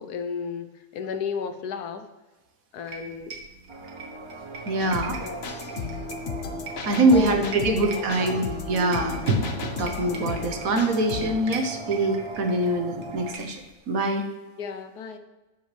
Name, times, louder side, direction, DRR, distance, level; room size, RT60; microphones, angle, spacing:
voice 1, 0.0-2.0 2.7-3.3 5.2-5.6 7.1-8.4 14.6-15.2, left 6 dB, 90° left, 8 dB, 1.4 m, -34 dB
sound 1, 2.9-13.7, right 3 dB, 80° right, 1.9 m, -43 dB
sound 2, 3.7-13.3, right 3 dB, 30° right, 0.6 m, -40 dB
voice 2, 4.6-5.2 6.8-13.6 13.9-14.2, right 2 dB, 65° right, 5 dB, 1.5 m, -24 dB
sound 3, 4.8-11.4, left 5 dB, 50° left, 1.0 m, -35 dB
12.0 x 8.2 x 3.3 m, 1.2 s
omnidirectional pair, 1.6 m